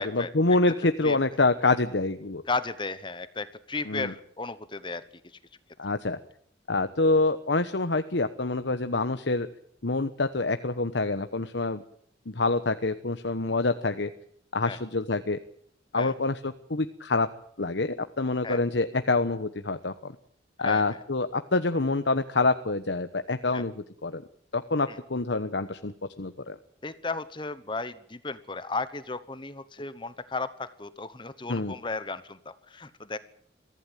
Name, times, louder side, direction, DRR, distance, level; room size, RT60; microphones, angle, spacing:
voice 1, 0.0-2.4 3.9-4.1 5.8-6.2 6.7-9.5 9.8-11.8 12.3-14.1 14.5-15.4 15.9-17.3 17.6-20.1 20.6-23.7 24.0-24.2 24.5-26.5 31.5-31.7, left 3 dB, 80° left, 9 dB, 1.1 m, -26 dB
voice 2, 2.5-5.0 14.7-14.8 15.9-16.1 18.4-18.6 20.6-21.0 23.5-23.6 24.9-25.0 26.8-33.2, left 3 dB, 25° left, 14 dB, 1.0 m, -34 dB
23.0 x 15.5 x 9.1 m, 0.65 s
head